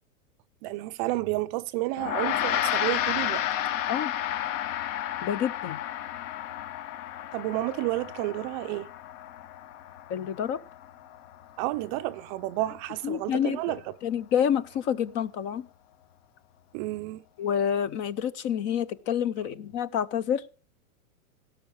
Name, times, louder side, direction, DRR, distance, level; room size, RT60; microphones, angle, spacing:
voice 1, 0.6-3.4 7.3-8.9 11.6-13.8 16.7-17.2, right 18 dB, 35° right, 0.5 m, -31 dB
Gong, 2.0-11.6, left 11 dB, 55° left, 1.2 m, -32 dB
voice 2, 5.2-5.8 10.1-10.6 13.0-13.7 14.0-15.6 17.4-20.4, left 9 dB, 25° left, 0.5 m, -28 dB
16.5 x 6.4 x 7.1 m
hypercardioid pair, 135°, 44 cm